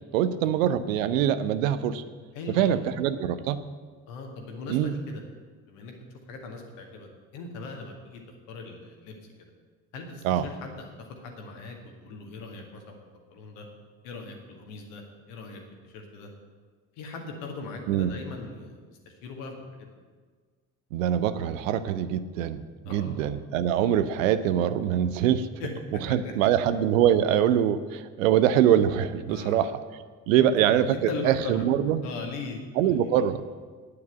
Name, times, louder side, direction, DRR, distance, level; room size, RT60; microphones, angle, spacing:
voice 1, 0.1-2.0 2.5-3.6 4.7-5.0 10.2-10.5 17.9-18.1 20.9-25.5 26.0-32.0 32.7-33.4, right 10 dB, 70° right, 13 dB, 0.8 m, -24 dB
voice 2, 2.3-3.0 4.1-5.2 5.7-6.0 6.3-8.2 8.5-9.1 9.9-12.8 13.3-13.7 14.0-16.3 17.0-18.8 19.1-19.9 22.9-23.2 25.6-26.3 29.3-29.6 30.4-30.5 30.9-31.6 32.0-33.2, left 3 dB, 70° left, 3 dB, 2.0 m, -39 dB
9.7 x 8.6 x 9.1 m, 1.5 s
figure-of-eight pair, 45°, 41 cm